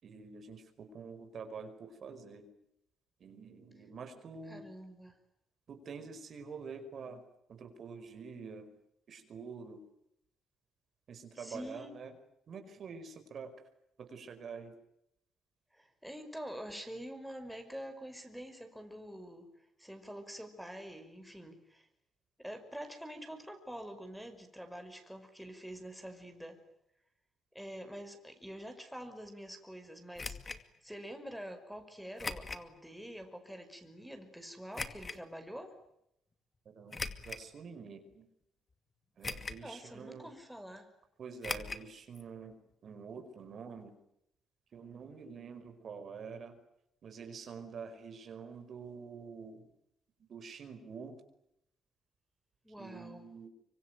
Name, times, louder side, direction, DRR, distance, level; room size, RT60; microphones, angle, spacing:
voice 1, 0.0-2.5 3.2-4.7 5.7-7.2 7.5-8.7 9.1-9.8 11.1-12.1 12.5-13.5 14.0-14.8 36.6-37.0 37.2-38.3 39.2-40.3 41.2-44.0 44.7-46.6 47.0-49.7 50.3-51.2 52.8-53.5, right 5 dB, 55° right, 7 dB, 4.9 m, -47 dB
voice 2, 4.5-5.2 11.4-11.9 15.7-19.5 19.8-21.9 22.4-26.6 27.5-35.7 39.6-40.9 52.6-53.3, equal, ahead, 5 dB, 5.5 m, -46 dB
sound 1, 30.2-30.6 32.2-32.7 33.2-33.3 34.7-35.2 36.9-37.5 38.1-38.2 39.2-39.7 40.0-40.1 41.4-41.9 42.1-42.2 42.5-42.6, left 4 dB, 30° left, 2.4 m, -40 dB
25.5 x 25.0 x 9.3 m, 0.79 s
cardioid pair, 90°, 0 cm